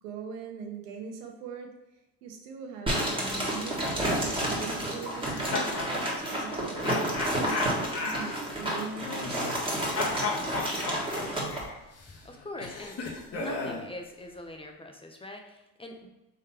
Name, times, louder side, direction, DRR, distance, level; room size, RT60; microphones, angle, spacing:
voice 1, 0.0-1.7 2.2-6.9 7.3-9.8, right 5 dB, 85° right, 4 dB, 1.0 m, -41 dB
sound 1, 2.9-11.6, right 1 dB, 10° right, 1.6 m, -30 dB
sound 2, 5.1-5.9 6.8-9.7 9.9-13.9, left 3 dB, 30° left, 1.1 m, -35 dB
voice 2, 12.2-13.0 13.3-16.1, left 1 dB, 10° left, 3 dB, 0.6 m, -42 dB
3.9 x 3.2 x 4.2 m, 0.97 s
supercardioid pair, 85°, 46 cm